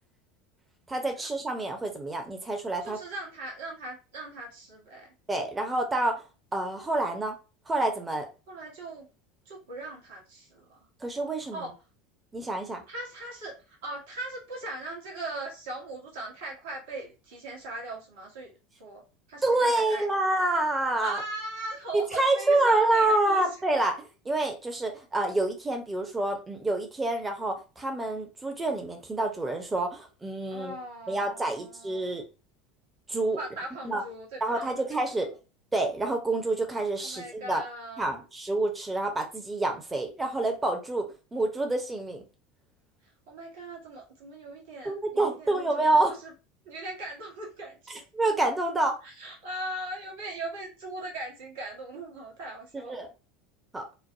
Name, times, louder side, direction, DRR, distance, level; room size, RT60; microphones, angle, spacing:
voice 1, 0.9-3.0 5.3-6.2 6.5-7.3 7.7-8.3 11.0-11.7 12.3-12.8 19.4-21.2 21.9-30.8 31.1-32.2 33.1-33.4 33.8-34.0 34.4-35.3 35.7-37.6 38.0-41.0 41.3-42.2 44.8-46.2 48.1-48.9 52.7-53.1 53.7-53.8, right 2 dB, 15° right, 4 dB, 0.8 m, -27 dB
voice 2, 2.8-5.1 8.5-9.1 9.4-10.8 11.5-11.7 12.9-18.5 18.8-19.0 19.3-20.3 21.0-23.5 30.5-32.2 33.4-35.2 37.0-38.1 43.3-46.3 46.6-48.0 49.0-53.0, right 2 dB, 65° right, -1 dB, 1.2 m, -39 dB
3.2 x 2.1 x 2.6 m, 0.31 s
figure-of-eight pair, 75°, 0 cm